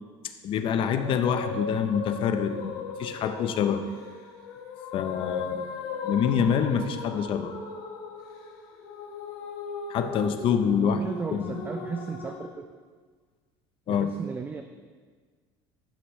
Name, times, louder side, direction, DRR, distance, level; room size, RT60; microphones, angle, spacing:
voice 1, 0.4-3.9 4.9-7.5 9.9-11.0 11.3-11.5 13.9-14.1, left 7 dB, 50° left, 9 dB, 0.7 m, -26 dB
sound 1, 0.7-12.5, left 4 dB, 80° left, 1.1 m, -37 dB
voice 2, 10.8-12.7 13.9-14.6, right 5 dB, 15° right, 6 dB, 0.4 m, -35 dB
11.5 x 6.1 x 3.1 m, 1.5 s
supercardioid pair, 115°, 12 cm